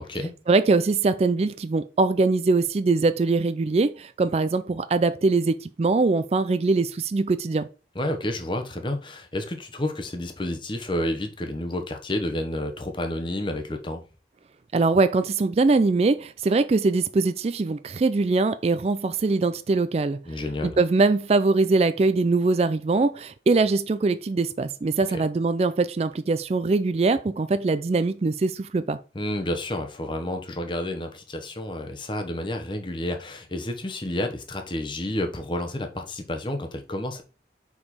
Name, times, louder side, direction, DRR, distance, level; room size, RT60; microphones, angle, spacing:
voice 1, 0.5-7.7 14.7-20.2 20.6-29.0, right 3 dB, 35° right, 0.3 m, -22 dB
voice 2, 7.9-14.0 20.3-20.8 25.1-25.2 29.1-37.2, left 1 dB, 25° left, 1.0 m, -30 dB
5.3 x 4.9 x 4.1 m
head